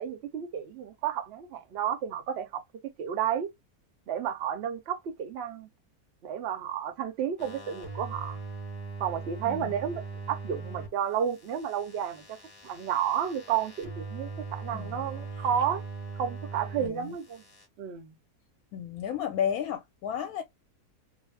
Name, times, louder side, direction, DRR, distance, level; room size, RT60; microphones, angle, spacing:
voice 1, 0.0-3.5 4.1-5.7 6.2-8.4 9.0-12.4 12.6-15.8 16.2-17.4 17.8-18.1, right 9 dB, 60° right, 0.7 m, -32 dB
sound 1, 7.4-10.9 11.2-16.9 17.2-17.7, right 4 dB, 25° left, 1.1 m, -41 dB
voice 2, 14.7-15.1 16.8-17.1 18.7-20.4, left 9 dB, 75° left, 1.0 m, -33 dB
2.6 x 2.0 x 3.2 m
omnidirectional pair, 1.7 m